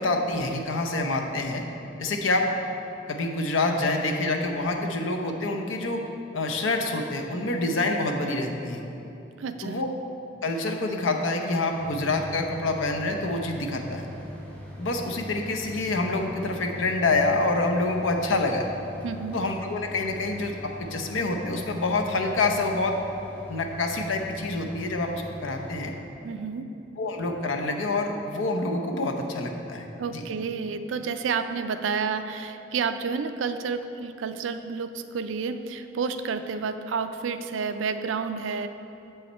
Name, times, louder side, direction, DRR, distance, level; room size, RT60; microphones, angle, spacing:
voice 1, 0.0-1.6 2.0-2.5 3.1-6.0 6.3-8.8 9.6-9.9 10.4-14.1 14.8-18.7 19.3-23.0 23.5-25.9 27.0-30.2, left 2 dB, 90° left, 3 dB, 0.7 m, -27 dB
voice 2, 9.4-9.8 19.0-19.4 26.2-26.6 30.0-38.7, right 5 dB, 85° right, 9 dB, 0.4 m, -30 dB
sound 1, 11.7-25.9, left 1 dB, 5° left, 0.9 m, -42 dB
7.2 x 5.6 x 4.3 m, 2.9 s
head